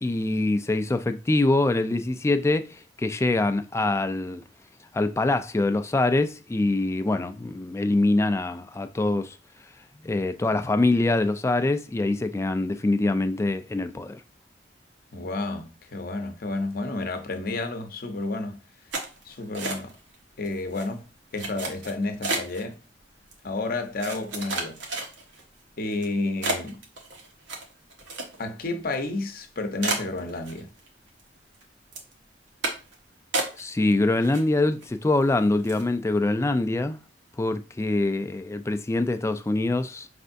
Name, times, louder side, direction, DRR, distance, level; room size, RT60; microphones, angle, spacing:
voice 1, 0.0-2.7 3.0-4.4 4.9-9.4 10.0-14.2 33.6-37.0 37.4-40.1, left 2 dB, 15° left, 0.3 m, -24 dB
voice 2, 15.1-18.6 19.2-19.9 20.4-21.1 21.3-22.8 23.4-24.8 25.8-26.8 28.4-30.7, left 2 dB, 55° left, 0.7 m, -31 dB
sound 1, 18.9-20.1 20.4-20.9 21.4-22.6 23.3-23.4 24.0-25.4 25.9-26.0 26.4-28.6 28.9-29.0 29.4-29.5 29.8-30.9 31.2-31.6 31.9-32.1 32.6-32.9 33.3-33.9 34.2-34.8 35.2-35.3 35.6-35.9, right 3 dB, 90° right, 1.1 m, -31 dB
5.3 x 3.3 x 2.6 m
head